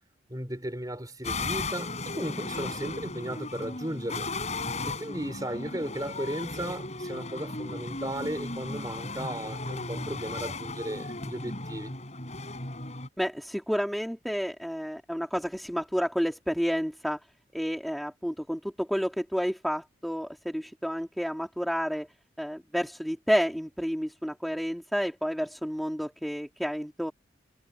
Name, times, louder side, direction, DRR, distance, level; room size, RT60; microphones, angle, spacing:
voice 1, 0.3-4.3 4.9-11.9, right 1 dB, 20° right, 5.5 m, -35 dB
sound 1, 1.2-13.1, left 3 dB, 40° left, 5.5 m, -36 dB
voice 2, 13.2-17.2 17.5-22.1 22.4-27.1, equal, ahead, 2.6 m, -30 dB
head